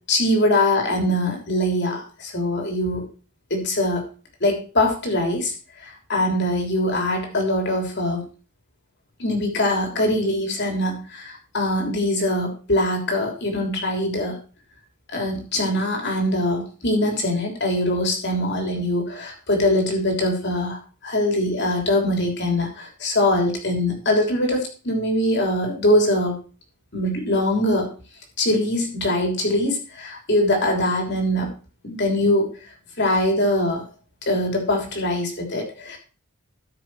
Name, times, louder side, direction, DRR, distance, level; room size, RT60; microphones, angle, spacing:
voice 1, 0.1-3.0 3.5-4.0 4.4-5.5 5.8-8.2 9.2-14.4 15.1-20.8 21.0-26.4 26.9-27.9 28.4-31.5 31.8-32.5 33.0-33.8 34.3-36.0, left 1 dB, 50° left, 2 dB, 3.2 m, -22 dB
13.0 x 6.2 x 4.7 m, 0.37 s
head